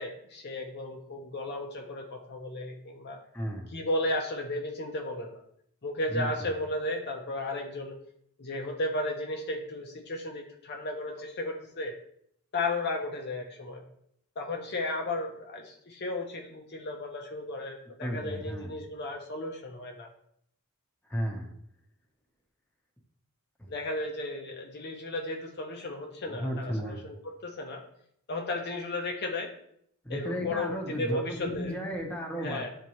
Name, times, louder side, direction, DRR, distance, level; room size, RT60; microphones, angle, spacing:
voice 1, 0.0-3.2 3.7-5.4 5.8-8.0 8.4-11.9 12.5-13.8 14.4-20.1 23.7-27.8 28.3-29.5 30.1-31.8 32.4-32.7, left 2 dB, 50° left, 2 dB, 0.7 m, -34 dB
voice 2, 3.3-3.7 6.1-6.3 18.0-18.7 21.1-21.5 23.6-23.7 26.2-27.0 30.0-32.7, equal, 5° left, -1 dB, 1.0 m, -34 dB
8.3 x 3.7 x 3.1 m, 0.70 s
head